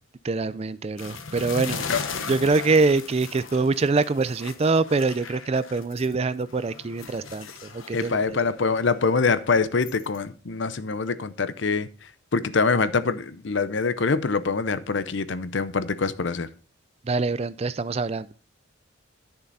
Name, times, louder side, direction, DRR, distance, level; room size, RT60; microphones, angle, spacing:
voice 1, 0.2-1.8 2.3-7.5 7.7-8.4 17.1-18.3, right 3 dB, 30° right, 0.4 m, -24 dB
sound 1, 1.0-6.1 6.5-10.2, left 5 dB, 75° left, 1.1 m, -38 dB
voice 2, 7.9-11.9 12.3-16.5, left 4 dB, 60° left, 0.6 m, -24 dB
11.0 x 6.6 x 4.1 m
head